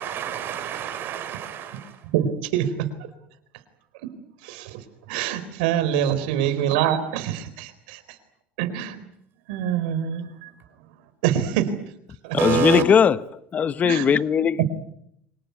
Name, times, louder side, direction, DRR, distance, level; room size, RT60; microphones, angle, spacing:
voice 1, 0.0-2.0 12.4-12.8, right 8 dB, 45° right, 5.6 m, -27 dB
voice 2, 2.1-2.9 4.0-4.1 4.4-4.8 5.1-8.0 8.6-9.0 9.5-10.5 11.2-11.7 12.2-12.4 13.8-14.2 14.6-14.7, right 10 dB, 80° right, 4.0 m, -25 dB
voice 3, 12.4-13.2 13.5-14.6, left 7 dB, 30° left, 1.0 m, -19 dB
25.5 x 19.5 x 9.6 m
supercardioid pair, 115°, 5 cm